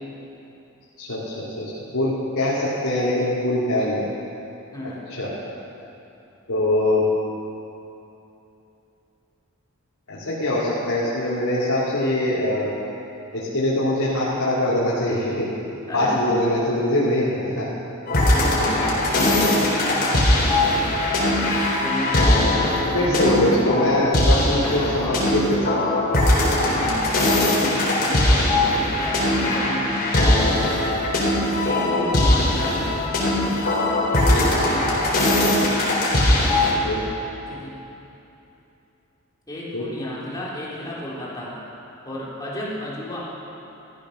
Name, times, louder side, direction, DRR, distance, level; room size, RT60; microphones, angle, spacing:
voice 1, 1.0-4.0 5.2-5.3 6.5-7.0 10.1-12.7 13.3-15.5 15.9-17.7 22.9-25.7 27.2-27.3 34.3-34.4 36.8-37.0 39.7-39.8, left 1 dB, 90° left, -10 dB, 3.2 m, -23 dB
voice 2, 4.7-5.0 15.9-16.6 18.3-20.7 21.7-23.8 24.2-25.3 26.6-27.1 27.6-30.3 31.6-32.8 34.1-35.2 37.5-37.8 39.5-41.5 42.0-43.2, left 1 dB, 15° left, -6 dB, 3.6 m, -33 dB
sound 1, 18.1-36.7, left 1 dB, 45° left, 3.9 m, -20 dB
15.5 x 14.0 x 6.6 m, 2.9 s
head